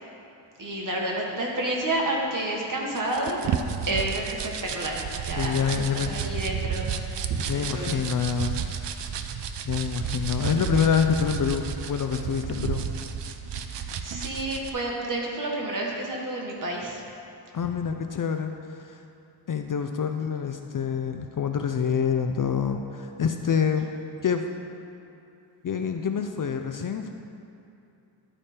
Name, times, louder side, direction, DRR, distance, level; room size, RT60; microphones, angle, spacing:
voice 1, 0.6-3.5 3.9-5.0 5.2-8.0 14.0-17.0, right 1 dB, 40° right, -2 dB, 1.5 m, -30 dB
sound 1, 3.0-14.7, right 7 dB, 65° right, 0.6 m, -32 dB
voice 2, 5.4-6.1 7.5-8.5 9.6-12.9 17.5-19.0 19.5-23.9 24.2-24.4 25.6-27.1, left 7 dB, 45° left, 5 dB, 0.4 m, -26 dB
12.5 x 5.0 x 4.3 m, 2.7 s
wide cardioid pair, 110°, 47 cm